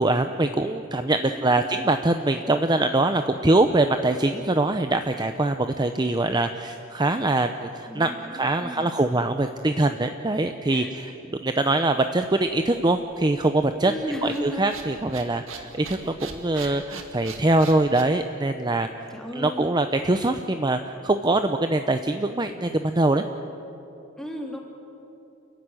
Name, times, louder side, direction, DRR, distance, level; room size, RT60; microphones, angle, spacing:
voice 1, 0.0-13.9 14.2-19.1 19.3-23.2, right 2 dB, 20° right, 8 dB, 0.7 m, -23 dB
voice 2, 1.2-1.7 7.9-9.0 10.7-10.9 13.8-14.7 16.5-16.8 19.1-19.7 24.2-24.6, equal, 5° left, 0 dB, 3.3 m, -35 dB
sound 1, 12.4-18.0, right 5 dB, 85° right, 2.2 m, -42 dB
28.5 x 15.5 x 9.8 m, 2.9 s
head